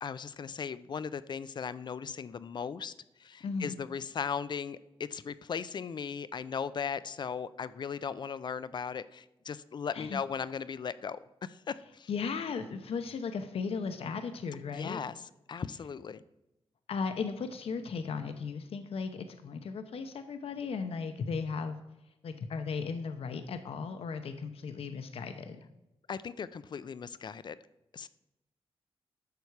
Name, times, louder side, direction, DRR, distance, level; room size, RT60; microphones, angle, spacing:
voice 1, 0.0-2.9 3.2-12.1 14.7-15.2 15.5-16.2 26.1-27.6 27.9-28.1, left 6 dB, 50° left, 16 dB, 0.4 m, -37 dB
voice 2, 3.4-3.7 9.9-10.2 12.1-15.0 16.9-21.8 22.2-25.6, left 5 dB, 75° left, 8 dB, 0.8 m, -36 dB
11.5 x 6.9 x 4.8 m, 0.96 s
wide cardioid pair, 125°, 10 cm